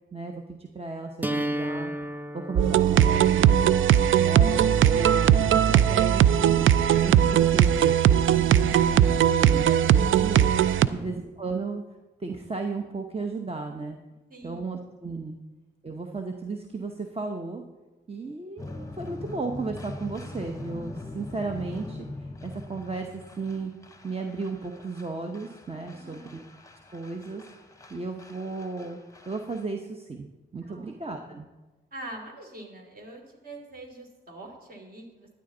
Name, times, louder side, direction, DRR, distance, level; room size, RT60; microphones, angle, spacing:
voice 1, 0.1-1.9 2.3-3.8 4.2-6.7 7.0-10.5 10.9-11.8 12.2-14.0 14.4-15.4 15.8-17.6 18.1-23.7 24.0-26.4 26.9-27.4 27.9-29.0 29.3-30.3 30.5-31.5, right 3 dB, 30° right, 4 dB, 0.9 m, -34 dB
sound 1, 1.2-7.2, right 1 dB, 10° right, 0.5 m, -36 dB
sound 2, 2.5-10.9, right 10 dB, 75° right, 0.4 m, -19 dB
voice 2, 10.7-11.2 14.3-14.6 25.9-26.4 30.6-30.9 31.2-31.4 31.9-35.3, right 1 dB, 45° right, 2 dB, 2.8 m, -44 dB
sound 3, 18.6-29.6, left 2 dB, 15° left, 0.9 m, -42 dB
12.5 x 9.7 x 3.9 m, 1.2 s
cardioid pair, 75°, 21 cm